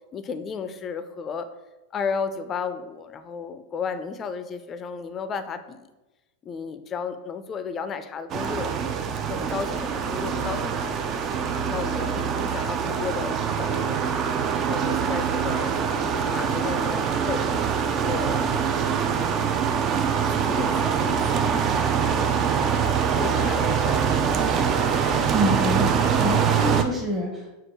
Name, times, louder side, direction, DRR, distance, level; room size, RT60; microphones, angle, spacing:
voice 1, 0.1-1.5 1.9-5.9 6.4-8.9 9.3-10.8 11.7-14.0 14.7-17.5 18.0-18.5 19.2-19.3 20.3-21.8 23.2-24.1, left 6 dB, 30° left, 10 dB, 0.4 m, -33 dB
sound 1, 8.3-26.8, right 7 dB, 40° right, 0.4 m, -24 dB
voice 2, 25.3-27.5, equal, 20° right, 0 dB, 0.9 m, -27 dB
4.4 x 2.4 x 4.5 m, 1.1 s
hypercardioid pair, 105°, 0 cm